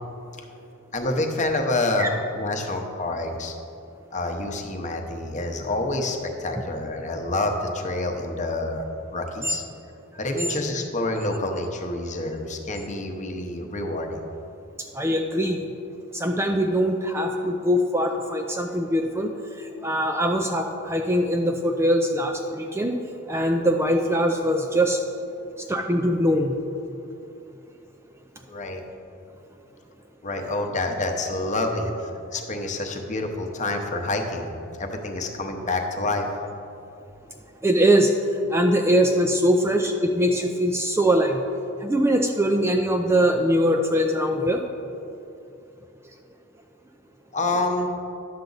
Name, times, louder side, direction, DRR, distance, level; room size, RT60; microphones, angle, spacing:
voice 1, 0.9-3.5 4.1-8.8 9.1-9.6 10.2-14.2 28.5-28.8 30.2-31.9 32.3-34.5 34.8-36.3 47.3-47.9, left 2 dB, 35° left, 4 dB, 0.9 m, -27 dB
voice 2, 14.9-15.6 16.1-19.3 19.6-23.0 23.3-25.0 25.6-26.6 37.6-38.1 38.5-41.4 41.8-44.6, equal, 10° right, 3 dB, 0.4 m, -22 dB
11.0 x 7.2 x 3.9 m, 2.8 s
head